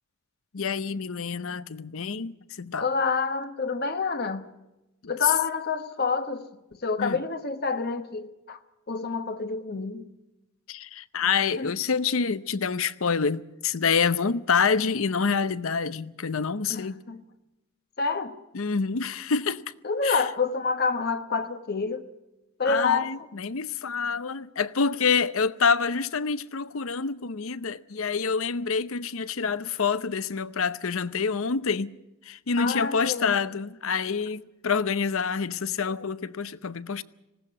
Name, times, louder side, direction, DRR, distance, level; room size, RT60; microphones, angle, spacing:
voice 1, 0.5-2.9 5.0-5.3 7.0-7.2 10.7-17.0 18.5-19.6 20.0-20.2 22.6-31.9 32.2-37.0, left 5 dB, 65° left, 0.7 m, -27 dB
voice 2, 2.8-4.4 5.1-8.6 8.9-10.1 11.6-11.7 16.7-17.2 18.0-18.3 19.8-22.0 22.6-23.1 32.6-33.3 35.9-36.0, left 4 dB, 45° left, 1.1 m, -28 dB
20.0 x 16.5 x 8.4 m
head